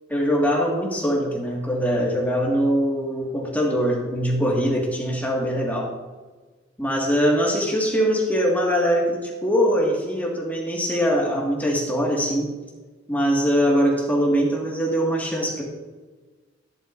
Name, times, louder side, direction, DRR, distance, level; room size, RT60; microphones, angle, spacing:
voice 1, 0.1-5.9 6.8-12.5 13.1-15.6, equal, 10° left, -3 dB, 1.8 m, -22 dB
15.0 x 10.5 x 2.6 m, 1.3 s
head